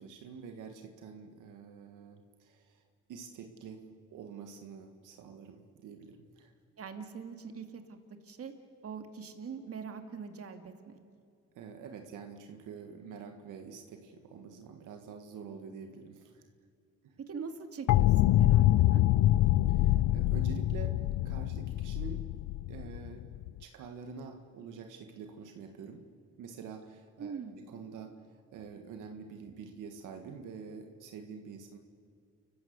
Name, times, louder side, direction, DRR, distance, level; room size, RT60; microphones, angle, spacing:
voice 1, 0.0-2.8 3.1-6.5 11.6-16.4 17.0-17.1 19.7-21.0 21.2-22.2 22.7-23.3 23.6-26.1 26.4-28.2 28.5-31.8, right 6 dB, 85° right, 5 dB, 1.8 m, -47 dB
voice 2, 6.8-8.0 8.2-8.5 8.8-11.0 17.3-19.0 27.2-27.7, right 5 dB, 50° right, 6 dB, 2.4 m, -43 dB
sound 1, 17.9-23.6, left 14 dB, 70° left, 0.5 m, -25 dB
29.5 x 15.0 x 8.2 m, 2.3 s
cardioid pair, 90°, 30 cm